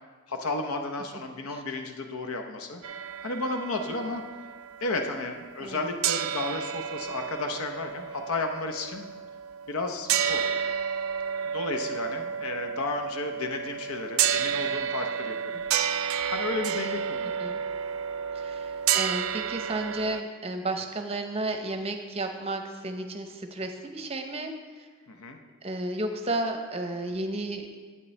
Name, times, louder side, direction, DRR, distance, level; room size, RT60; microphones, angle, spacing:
voice 1, 0.3-2.8 3.2-4.2 4.8-9.1 9.7-10.5 11.5-15.6 16.3-17.3 25.1-25.4, left 3 dB, 90° left, 5 dB, 0.7 m, -33 dB
sound 1, 2.8-5.8 6.0-20.2, right 8 dB, 80° right, 0.4 m, -31 dB
voice 2, 18.3-24.5 24.8-24.9 25.6-27.8, right 2 dB, 30° right, 5 dB, 0.7 m, -32 dB
9.6 x 8.7 x 3.2 m, 1.5 s
head